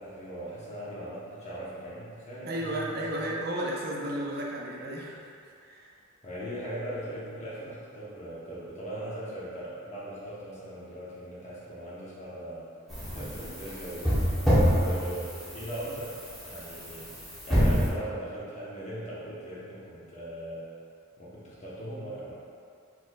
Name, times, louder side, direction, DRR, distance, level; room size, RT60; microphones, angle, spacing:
voice 1, 0.0-3.1 6.2-12.7 13.1-17.1 17.4-20.6 21.2-22.3, right 1 dB, 35° left, -8 dB, 1.0 m, -39 dB
voice 2, 2.4-5.9 15.9-16.0, right 1 dB, 50° right, -3 dB, 0.5 m, -34 dB
sound 1, 12.9-17.9, equal, ahead, 1.0 m, -27 dB
4.4 x 4.2 x 2.4 m, 2.4 s
head